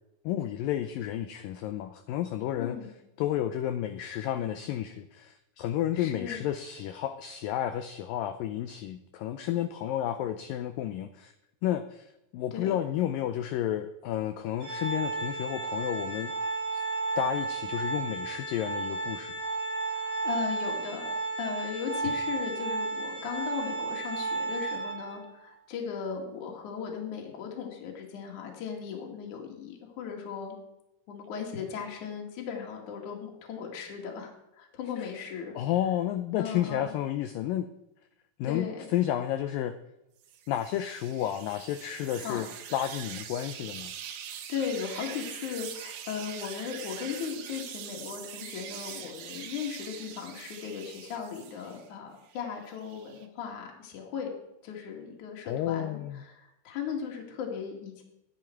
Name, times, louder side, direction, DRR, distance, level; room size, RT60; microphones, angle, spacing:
voice 1, 0.3-2.8 3.2-11.3 11.6-16.3 16.7-16.8 17.2-19.3 35.6-37.7 38.4-39.7 40.5-43.9 55.5-56.2, left 11 dB, 90° left, 10 dB, 1.9 m, -31 dB
voice 2, 2.6-2.9 5.9-6.4 12.5-12.8 19.9-21.1 21.4-30.6 31.1-35.5 36.4-36.9 38.4-38.8 42.2-42.4 44.5-54.4 54.6-58.0, left 7 dB, 55° left, 0 dB, 3.1 m, -37 dB
Organ, 14.6-25.3, right 3 dB, 40° right, 2.1 m, -33 dB
sound 1, 40.2-51.9 52.3-53.3, right 9 dB, 85° right, 3.3 m, -43 dB
13.5 x 10.5 x 4.5 m, 0.89 s
omnidirectional pair, 4.7 m